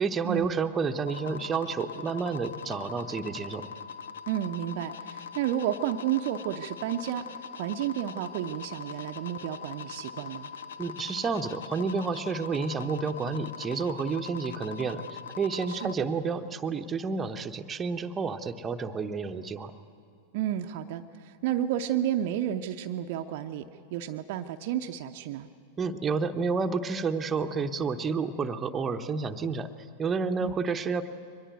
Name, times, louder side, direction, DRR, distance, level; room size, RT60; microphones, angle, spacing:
voice 1, 0.0-3.7 10.8-19.7 25.8-29.7 30.0-31.1, right 5 dB, 20° right, 6 dB, 1.0 m, -30 dB
sound 1, 1.1-15.9, left 6 dB, 65° left, 0.9 m, -42 dB
voice 2, 4.3-7.2 7.6-10.5 15.7-16.1 20.3-25.5 30.4-30.5, right 11 dB, 50° right, 6 dB, 0.7 m, -31 dB
23.0 x 20.0 x 9.2 m, 2.4 s
figure-of-eight pair, 90°, 0 cm